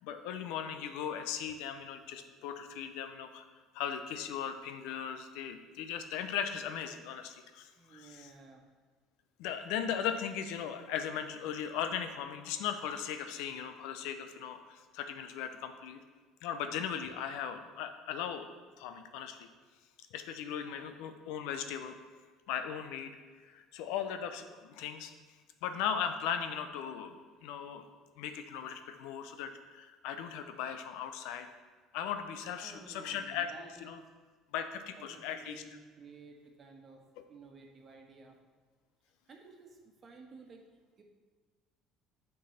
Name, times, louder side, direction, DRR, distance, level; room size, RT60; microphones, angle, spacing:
voice 1, 0.0-3.4 3.7-8.3 9.4-16.0 16.4-18.5 18.8-19.5 20.1-22.0 22.5-23.1 23.4-25.1 25.6-27.8 28.2-31.5 31.9-33.5 33.8-34.0 34.5-35.6 37.2-37.3, left 8 dB, 75° left, 8 dB, 0.6 m, -38 dB
voice 2, 7.8-8.6 20.7-20.9 32.6-34.0 35.0-37.0 37.3-38.4 39.3-41.0, right 4 dB, 40° right, 2 dB, 1.2 m, -54 dB
8.3 x 4.5 x 4.2 m, 1.5 s
supercardioid pair, 85°, 0 cm